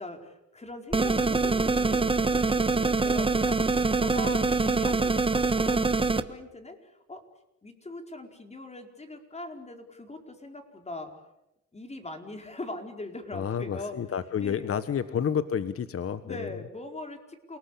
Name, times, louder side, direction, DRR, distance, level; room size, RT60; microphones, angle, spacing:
voice 1, 0.0-7.2 7.6-11.2 11.7-14.0 14.4-15.1 16.2-17.6, left 2 dB, 20° left, 5 dB, 4.5 m, -41 dB
sound 1, 0.9-6.2, right 3 dB, 20° right, 1.3 m, -24 dB
voice 2, 13.3-16.5, left 8 dB, 50° left, 13 dB, 1.3 m, -30 dB
28.5 x 19.0 x 8.6 m, 0.89 s
cardioid pair, 90°, 30 cm